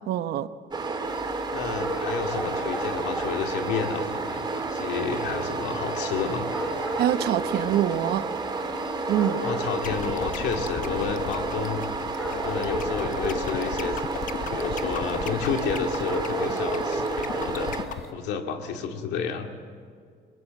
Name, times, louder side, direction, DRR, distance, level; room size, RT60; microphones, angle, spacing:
voice 1, 0.1-0.5 7.0-8.3 9.1-9.4, right 12 dB, 75° right, 11 dB, 1.0 m, -25 dB
sound 1, 0.7-17.9, right 3 dB, 25° right, 2.5 m, -31 dB
sound 2, 1.0-18.1, equal, ahead, 4.7 m, -36 dB
voice 2, 1.5-6.5 9.4-11.8 12.3-19.5, left 6 dB, 85° left, 4 dB, 2.3 m, -31 dB
sound 3, 9.8-18.1, left 8 dB, 50° left, 1.0 m, -36 dB
23.5 x 20.5 x 8.1 m, 2.1 s
cardioid pair, 110°, 17 cm